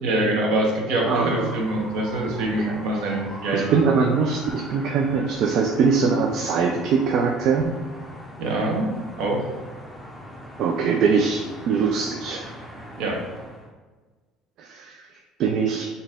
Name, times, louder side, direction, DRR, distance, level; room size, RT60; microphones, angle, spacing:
voice 1, 0.0-3.8 8.4-8.9 9.2-9.4 13.0-13.2, right 1 dB, 65° right, 0 dB, 1.0 m, -24 dB
sound 1, 1.0-13.7, equal, 5° left, 0.5 m, -40 dB
voice 2, 1.0-1.6 2.6-2.8 3.5-7.7 10.6-12.5 14.6-15.9, right 5 dB, 50° right, 2 dB, 0.3 m, -22 dB
3.9 x 2.7 x 3.6 m, 1.3 s
cardioid pair, 160°, 0 cm